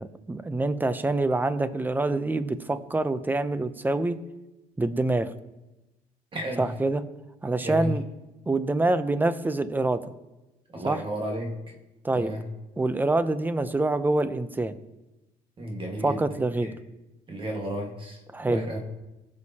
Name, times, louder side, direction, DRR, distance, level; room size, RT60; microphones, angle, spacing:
voice 1, 0.0-4.2 4.8-5.3 6.6-7.0 7.4-8.0 8.5-10.0 10.8-11.0 12.0-12.3 12.8-14.7 16.0-16.7 18.3-18.6, right 2 dB, 10° right, 12 dB, 0.6 m, -26 dB
voice 2, 6.3-6.6 7.6-7.9 10.7-11.5 12.1-12.4 15.6-16.2 17.3-18.2 18.5-18.8, right 1 dB, 30° right, 1 dB, 1.7 m, -32 dB
19.5 x 6.5 x 2.9 m, 1.0 s
cardioid pair, 110°, 17 cm